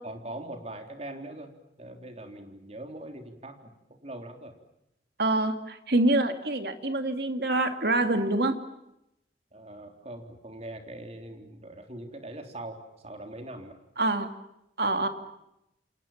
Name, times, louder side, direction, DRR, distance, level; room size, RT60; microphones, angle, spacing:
voice 1, 0.0-1.5 1.8-4.5 9.5-13.8, right 1 dB, 35° right, 4 dB, 3.8 m, -42 dB
voice 2, 5.2-8.6 14.0-14.3 14.8-15.1, right 2 dB, 60° right, 7 dB, 2.6 m, -26 dB
29.5 x 27.5 x 7.4 m, 0.84 s
head